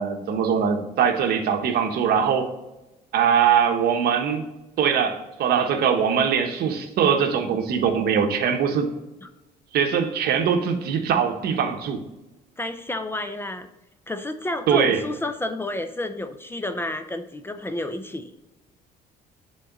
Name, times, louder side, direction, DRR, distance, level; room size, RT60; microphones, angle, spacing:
voice 1, 0.0-2.5 3.1-4.5 4.8-8.9 9.7-12.0 14.7-15.0, right 7 dB, 65° right, 6 dB, 1.0 m, -22 dB
voice 2, 12.6-13.7 14.1-18.3, left 1 dB, 15° left, 9 dB, 0.5 m, -30 dB
7.6 x 3.9 x 3.9 m, 1.0 s
cardioid pair, 110°, 17 cm